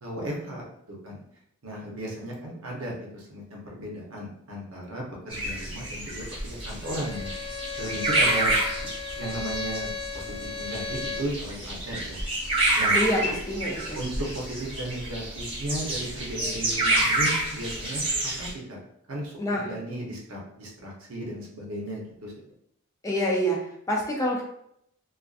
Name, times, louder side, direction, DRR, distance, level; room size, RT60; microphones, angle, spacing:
voice 1, 0.0-1.2 1.6-7.3 7.8-8.5 9.2-9.9 10.1-12.2 12.7-13.4 13.9-18.0 18.4-18.8 19.1-22.3, right 1 dB, 70° right, -2 dB, 0.8 m, -35 dB
sound 1, 5.3-18.5, right 2 dB, 25° right, 0.7 m, -28 dB
Bowed string instrument, 6.8-11.3, left 5 dB, 75° left, 0.5 m, -35 dB
voice 2, 12.9-14.0 19.4-19.7 23.0-24.4, equal, 15° left, -2 dB, 0.3 m, -27 dB
2.5 x 2.4 x 2.4 m, 0.73 s
head